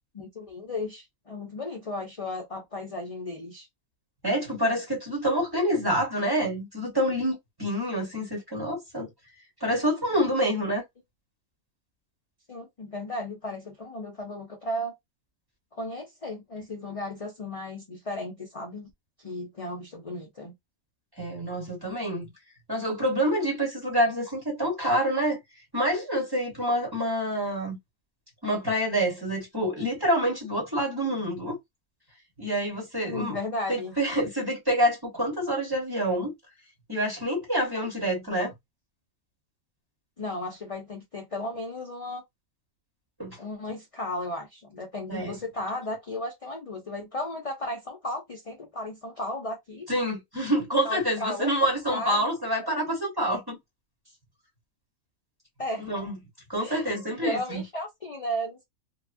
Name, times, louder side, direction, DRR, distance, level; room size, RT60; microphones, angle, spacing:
voice 1, 0.1-3.7 12.5-14.9 15.7-18.9 19.2-20.5 33.0-34.0 40.2-42.2 43.4-49.9 50.8-51.5 51.9-52.3 52.7-52.8 55.6-55.9 56.6-58.6, left 1 dB, 50° left, 0.4 m, -35 dB
voice 2, 4.2-9.1 9.6-10.8 21.2-22.3 22.7-25.4 25.7-27.8 28.4-31.6 32.4-33.4 33.7-36.3 36.9-38.5 43.2-43.4 45.1-45.4 49.9-53.6 55.8-56.1 56.5-57.6, equal, 20° right, 0.8 m, -27 dB
2.8 x 2.3 x 2.5 m
omnidirectional pair, 1.5 m